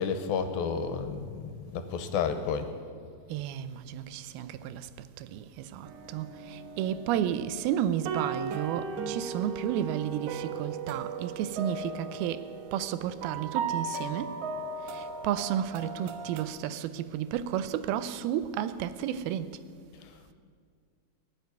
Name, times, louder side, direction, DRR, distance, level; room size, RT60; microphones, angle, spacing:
voice 1, 0.0-2.7 20.0-20.3, left 6 dB, 85° left, 2.7 m, -31 dB
voice 2, 3.3-4.9 5.2-14.4 14.9-19.6, right 10 dB, 90° right, 2.6 m, -32 dB
sound 1, 5.8-16.4, right 5 dB, 70° right, 2.0 m, -37 dB
19.5 x 7.2 x 9.4 m
omnidirectional pair, 4.3 m